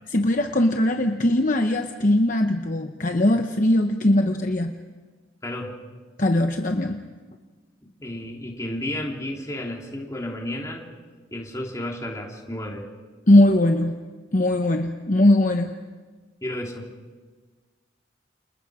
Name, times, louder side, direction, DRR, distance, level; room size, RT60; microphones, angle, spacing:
voice 1, 0.1-4.7 6.2-7.0 13.3-13.9 14.3-15.7, left 1 dB, 40° left, 5 dB, 0.9 m, -20 dB
voice 2, 5.4-5.7 7.8-10.8 11.3-12.9 16.4-16.9, left 1 dB, 15° left, -1 dB, 3.2 m, -32 dB
29.5 x 28.5 x 4.9 m, 1.4 s
head